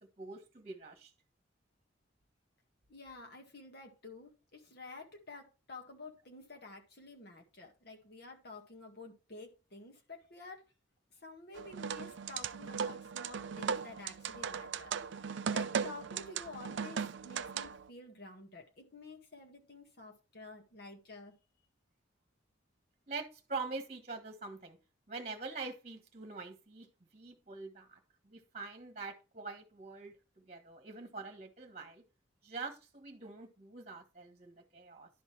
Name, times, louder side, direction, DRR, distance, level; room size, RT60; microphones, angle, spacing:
voice 1, 0.2-1.1 23.1-24.8 25.1-26.9 27.1-32.0 32.4-35.1, right 4 dB, 35° right, 1.3 m, -44 dB
voice 2, 2.9-10.6 11.2-15.3 15.5-21.4, left 3 dB, 55° left, 1.8 m, -50 dB
sound 1, 11.6-17.9, right 6 dB, 65° right, 0.4 m, -38 dB
11.0 x 4.0 x 4.7 m
head